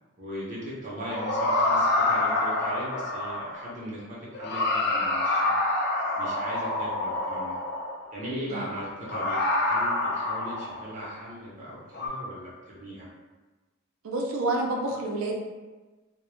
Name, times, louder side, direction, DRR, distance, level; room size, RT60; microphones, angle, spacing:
voice 1, 0.2-5.6 6.2-7.6 8.1-9.4 9.6-13.1, equal, 35° right, -7 dB, 0.6 m, -38 dB
sound 1, 1.0-3.7 4.3-8.1 9.0-10.9 11.9-12.1, left 2 dB, 55° left, 0.4 m, -27 dB
voice 2, 14.0-15.4, right 2 dB, 90° right, 1 dB, 0.4 m, -28 dB
2.1 x 2.0 x 3.0 m, 1.3 s
head